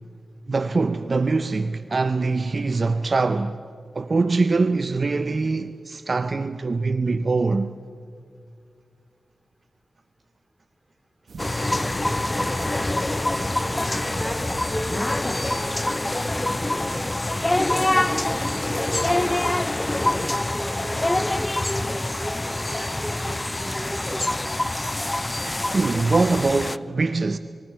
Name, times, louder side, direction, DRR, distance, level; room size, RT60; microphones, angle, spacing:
voice 1, 0.5-3.6 3.9-7.7 17.5-17.6 25.7-27.4, right 3 dB, 55° right, 0.6 m, -23 dB
sound 1, 11.3-17.1, right 3 dB, 75° right, 1.1 m, -42 dB
sound 2, 11.4-26.8, left 1 dB, 25° left, 0.4 m, -25 dB
voice 2, 13.5-15.1 15.5-16.1 17.7-19.6 19.9-24.6, equal, 5° right, 4.3 m, -35 dB
30.0 x 20.5 x 4.6 m
cardioid pair, 45°, 0 cm